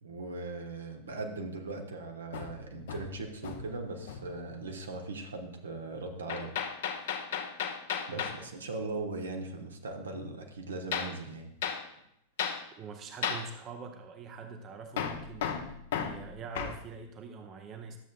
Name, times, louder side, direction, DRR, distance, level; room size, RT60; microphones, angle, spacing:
voice 1, 0.0-6.5 8.1-11.5, right 3 dB, 70° right, 3 dB, 1.0 m, -39 dB
Hammer, 2.3-3.8 4.1-4.4 6.3-8.4 10.9-11.2 11.6-11.8 12.4-12.6 13.2-13.5 15.0-16.8, left 7 dB, 55° left, 0.7 m, -35 dB
voice 2, 12.8-18.0, right 5 dB, 30° right, 6 dB, 0.7 m, -44 dB
12.0 x 7.3 x 2.4 m, 0.75 s
figure-of-eight pair, 90°, 0 cm